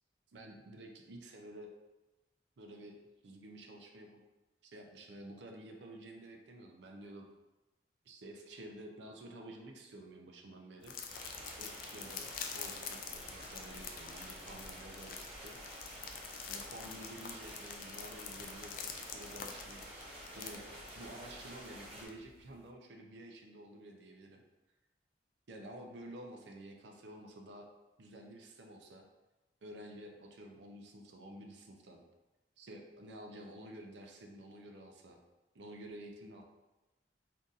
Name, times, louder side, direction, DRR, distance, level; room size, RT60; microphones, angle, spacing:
voice 1, 0.3-1.7 2.6-2.9 3.2-4.2 4.6-7.3 8.0-11.0 11.5-15.6 16.5-18.9 19.1-20.7 20.9-24.4 25.5-27.7 28.0-29.1 29.6-32.0 32.6-35.2 35.5-36.4, right 1 dB, 75° right, 2 dB, 0.5 m, -51 dB
sound 1, 10.8-22.5, left 6 dB, 50° left, 0.3 m, -47 dB
sound 2, 11.1-22.1, equal, 35° right, 0.9 m, -50 dB
2.7 x 2.5 x 3.7 m, 1.1 s
head